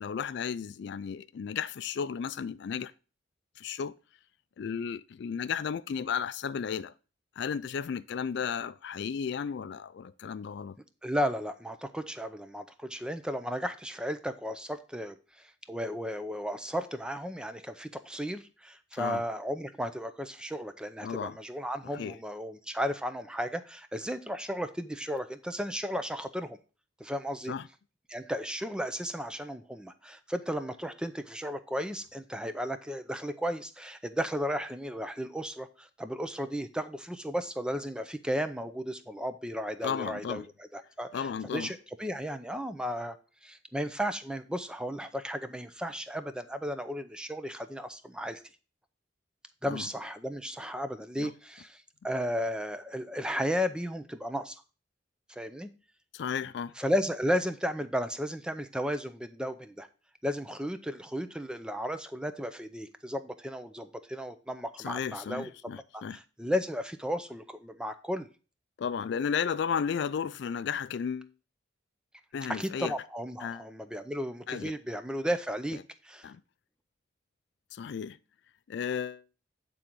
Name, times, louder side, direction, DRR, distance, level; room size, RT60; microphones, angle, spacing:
voice 1, 0.0-2.9 3.6-3.9 4.6-6.9 7.4-10.8 19.0-19.2 21.0-21.4 21.8-22.2 27.5-27.7 39.8-40.5 41.1-41.7 49.7-49.9 51.2-51.3 56.1-56.7 64.8-66.2 68.8-71.3 72.3-72.9 73.4-73.7 74.5-74.7 75.7-75.8 76.2-76.4 77.7-78.2 78.7-79.2, left 7 dB, 60° left, 0.3 m, -34 dB
voice 2, 11.0-26.6 27.0-27.5 28.1-43.2 43.4-48.4 49.6-54.6 55.3-55.7 56.8-59.9 60.2-65.5 65.9-68.3 72.5-75.8 76.0-76.3, equal, 5° right, 0.5 m, -34 dB
8.5 x 3.8 x 6.0 m
head